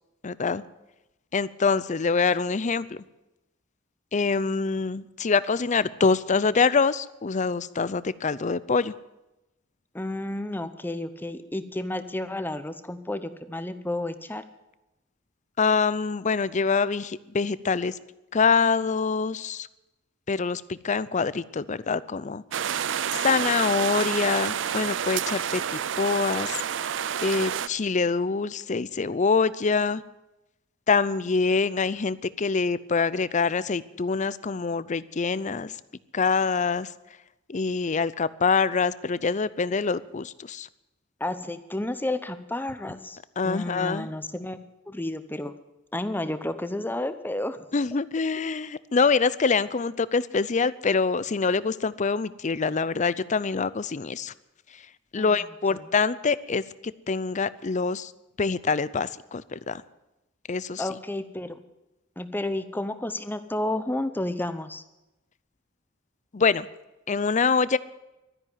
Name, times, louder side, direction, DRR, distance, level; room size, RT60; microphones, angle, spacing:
voice 1, 0.2-0.6 1.3-3.0 4.1-8.9 15.6-18.0 18.3-19.7 20.3-22.4 23.1-26.6 27.2-30.0 30.9-35.7 36.1-36.9 37.5-40.7 43.4-44.1 47.7-54.3 55.1-56.6 57.1-58.1 58.4-59.8 60.5-60.8 66.3-66.7 67.1-67.8, left 4 dB, 40° left, 18 dB, 0.6 m, -25 dB
voice 2, 9.9-14.4 41.2-43.2 43.4-44.6 44.9-45.5 45.9-47.6 55.2-55.3 55.7-55.8 60.8-61.6 62.2-64.8, left 1 dB, 10° left, 11 dB, 0.8 m, -31 dB
sound 1, 22.5-27.7, right 8 dB, 70° right, 0.5 m, -29 dB
13.0 x 10.5 x 9.4 m, 0.96 s
head